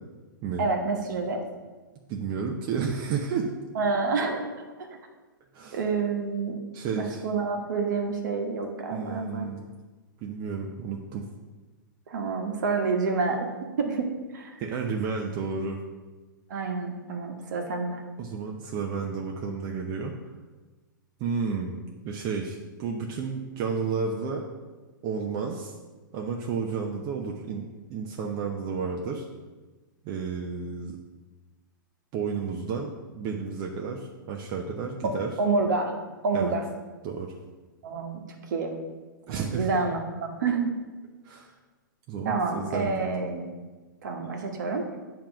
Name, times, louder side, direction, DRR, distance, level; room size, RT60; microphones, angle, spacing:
voice 1, 0.6-1.4 3.7-4.5 4.8-4.9 5.7-6.6 6.9-9.5 12.1-13.5 13.8-14.5 16.5-18.0 35.0-35.1 35.4-36.0 36.2-36.7 37.8-38.2 38.5-38.7 39.3-40.8 42.2-43.5 44.0-44.9, right 4 dB, 60° right, 3 dB, 1.3 m, -28 dB
voice 2, 2.1-3.5 5.5-5.8 6.7-7.2 8.9-9.7 10.2-11.2 14.6-15.8 18.2-20.1 21.2-21.8 22.0-24.5 25.0-25.7 26.1-29.3 30.0-31.0 32.1-35.3 36.3-36.5 37.0-37.3 39.3-39.7 41.2-41.5 42.1-43.0, right 5 dB, 35° right, 1 dB, 0.7 m, -31 dB
8.5 x 3.0 x 6.1 m, 1.3 s
hypercardioid pair, 120°, 11 cm